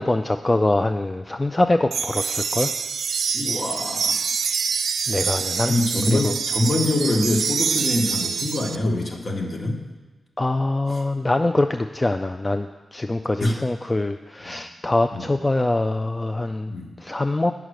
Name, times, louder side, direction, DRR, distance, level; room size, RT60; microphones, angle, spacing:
voice 1, 0.0-2.7 5.1-5.7 6.1-6.4 10.4-16.7 17.0-17.5, left 2 dB, 20° left, 7 dB, 0.3 m, -23 dB
sound 1, 1.9-8.8, right 6 dB, 80° right, 0.4 m, -25 dB
voice 2, 3.3-4.2 5.6-9.8 10.9-11.0 13.4-13.6 14.4-14.6 15.1-15.2 16.7-16.9, left 2 dB, 50° left, 1 dB, 1.5 m, -24 dB
9.0 x 5.9 x 6.5 m, 1.2 s
wide cardioid pair, 95°, 0 cm